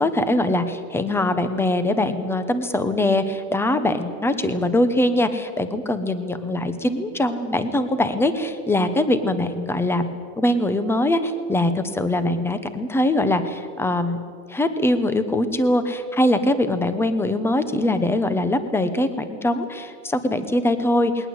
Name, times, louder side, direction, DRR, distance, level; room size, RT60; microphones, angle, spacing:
voice 1, 0.0-10.1 10.4-14.2 14.5-21.3, left 1 dB, 5° left, 11 dB, 1.1 m, -22 dB
21.0 x 19.0 x 8.2 m, 2.1 s
supercardioid pair, 145°, 46 cm